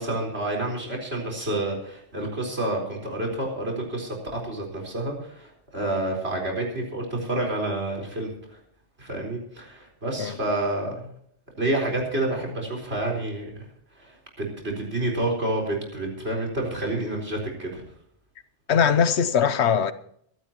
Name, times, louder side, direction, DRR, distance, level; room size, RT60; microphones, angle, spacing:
voice 1, 0.0-8.3 9.0-11.1 11.6-13.7 14.0-14.2 14.6-17.8, right 1 dB, 65° right, 4.6 m, -29 dB
voice 2, 18.7-19.9, left 7 dB, 70° left, 1.0 m, -21 dB
24.0 x 12.0 x 3.0 m
omnidirectional pair, 1.2 m